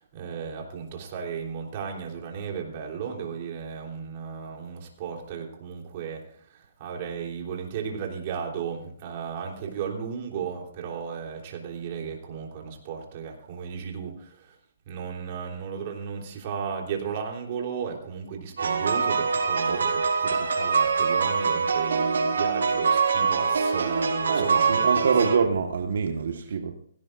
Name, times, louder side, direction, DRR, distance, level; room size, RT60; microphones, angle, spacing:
voice 1, 0.0-14.6 14.9-25.1 26.4-26.6, right 6 dB, 40° right, 1 dB, 3.5 m, -35 dB
sound 1, 18.6-25.4, right 5 dB, 85° right, 4.3 m, -24 dB
voice 2, 24.3-26.7, right 5 dB, 70° right, 4 dB, 1.5 m, -25 dB
17.0 x 16.5 x 2.6 m, 0.65 s
hypercardioid pair, 160°, 0 cm